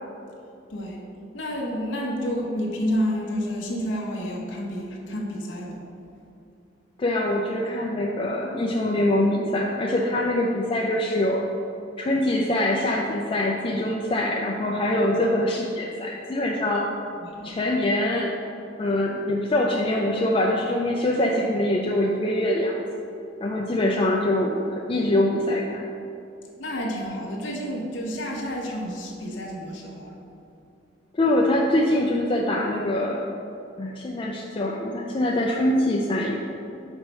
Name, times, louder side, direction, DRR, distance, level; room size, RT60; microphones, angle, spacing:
voice 1, 0.7-1.0 1.3-5.9 17.2-17.6 26.6-30.1, equal, 90° left, -2 dB, 0.9 m, -30 dB
voice 2, 7.0-11.4 12.0-16.9 17.4-18.3 18.8-22.9 23.4-25.8 31.1-33.2 33.8-36.4, left 1 dB, 30° left, -2 dB, 0.4 m, -24 dB
4.7 x 4.2 x 5.3 m, 2.6 s
head